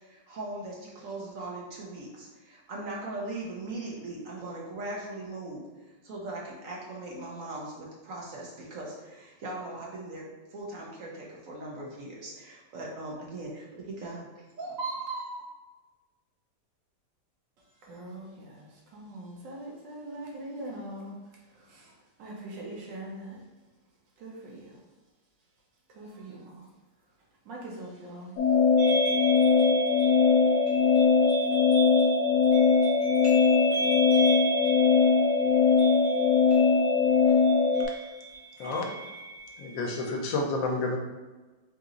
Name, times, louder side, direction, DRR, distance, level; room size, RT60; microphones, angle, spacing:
voice 1, 0.0-5.6 6.0-10.2 10.5-14.3 14.6-15.4, right 2 dB, 55° right, -3 dB, 1.1 m, -39 dB
voice 2, 17.8-21.2 21.5-21.9 22.2-23.4 24.2-24.8 25.9-26.7 27.4-28.4, right 1 dB, 80° right, -3 dB, 1.6 m, -42 dB
sound 1, 28.4-37.9, left 5 dB, 75° left, 1.0 m, -21 dB
sound 2, 28.8-40.2, right 2 dB, 25° right, 1.5 m, -36 dB
voice 3, 39.6-41.0, left 3 dB, 90° left, 1 dB, 1.4 m, -29 dB
4.0 x 2.9 x 3.7 m, 1.2 s
omnidirectional pair, 2.0 m